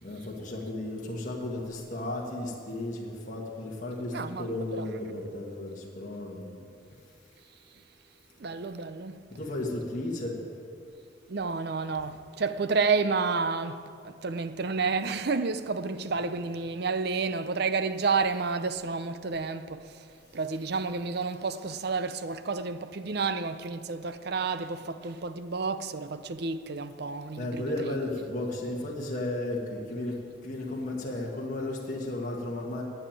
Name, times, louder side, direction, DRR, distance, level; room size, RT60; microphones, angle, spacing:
voice 1, 0.0-6.6 9.3-10.4 27.4-32.8, left 1 dB, 40° left, 1.8 m, -34 dB
voice 2, 4.1-4.5 4.7-4.9 8.4-9.3 11.3-20.1 20.3-27.9, right 4 dB, 50° right, 0.6 m, -30 dB
11.0 x 9.0 x 9.0 m
head